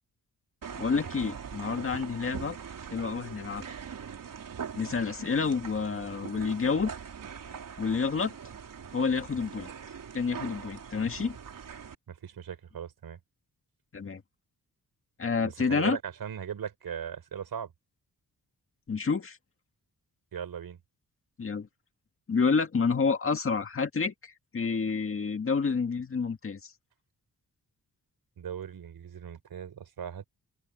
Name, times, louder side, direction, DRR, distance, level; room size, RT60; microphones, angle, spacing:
sound 1, 0.6-11.9, right 7 dB, 65° right, 3.7 m, -42 dB
voice 1, 0.7-2.6 2.9-3.8 4.8-6.9 7.8-8.3 8.9-9.7 10.1-11.4 13.9-14.2 15.2-16.0 18.9-19.4 21.4-21.7 22.3-26.7, left 5 dB, 35° left, 1.9 m, -29 dB
voice 2, 12.1-13.2 15.4-17.7 20.3-20.8 28.4-30.3, right 8 dB, 80° right, 4.7 m, -38 dB
open air
wide cardioid pair, 165°, 36 cm